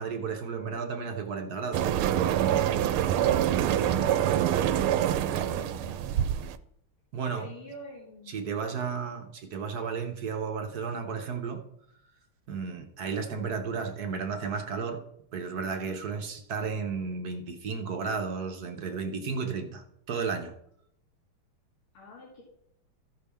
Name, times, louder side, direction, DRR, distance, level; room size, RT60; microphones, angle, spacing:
voice 1, 0.0-2.0 7.1-7.5 8.3-11.6 12.5-15.0 15.3-20.6, right 5 dB, 55° right, 1.2 m, -33 dB
sound 1, 1.7-6.6, right 11 dB, 85° right, 1.5 m, -25 dB
voice 2, 3.5-6.0 7.3-9.1 21.9-22.4, left 2 dB, 80° left, 2.8 m, -47 dB
14.0 x 5.7 x 3.5 m
omnidirectional pair, 2.3 m